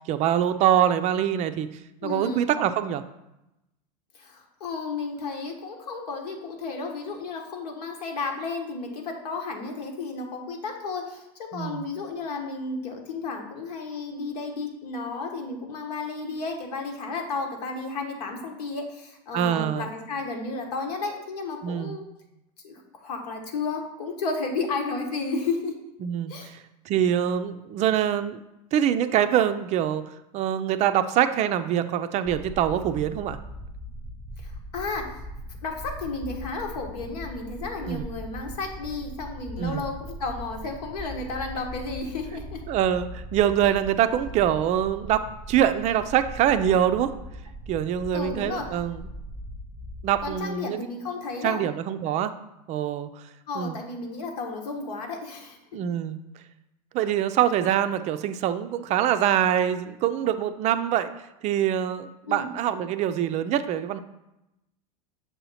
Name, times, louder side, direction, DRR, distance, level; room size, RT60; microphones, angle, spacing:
voice 1, 0.1-1.7 2.0-3.0 11.5-11.8 19.3-19.9 21.6-22.0 26.0-26.6 26.9-28.4 28.7-30.0 30.3-33.4 37.8-38.1 39.6-39.8 42.7-47.1 47.7-49.0 50.0-50.8 51.4-52.3 52.7-53.1 53.6-53.8 55.7-56.2 56.9-61.1 61.4-64.0, right 10 dB, 35° right, 10 dB, 0.4 m, -24 dB
voice 2, 2.0-2.5 4.1-22.0 22.6-25.7 26.3-26.5 34.4-35.3 35.6-42.6 48.1-48.7 50.2-51.6 53.5-55.6 62.3-62.5, left 3 dB, 85° left, 2 dB, 1.4 m, -33 dB
sound 1, 32.3-50.4, equal, 5° right, 0.7 m, -40 dB
6.8 x 2.8 x 5.6 m, 0.90 s
supercardioid pair, 120°, 20 cm